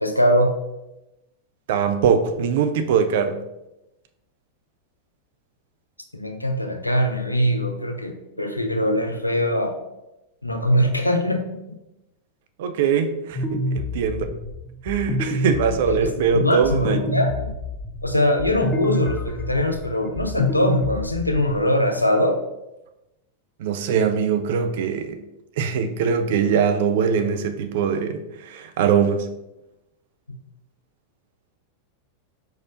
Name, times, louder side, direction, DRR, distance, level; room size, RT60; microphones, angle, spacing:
voice 1, 0.0-0.6 6.1-9.8 10.4-11.4 15.8-17.5 18.0-22.4 30.3-30.4, left 1 dB, 85° left, 5 dB, 0.5 m, -22 dB
voice 2, 1.7-3.4 12.6-14.3 14.8-17.0 23.6-25.2 25.6-29.3, right 7 dB, 55° right, 8 dB, 0.4 m, -22 dB
sound 1, 13.3-21.6, left 1 dB, 20° left, 0.6 m, -28 dB
4.9 x 4.2 x 2.4 m, 0.93 s
figure-of-eight pair, 90°, 0 cm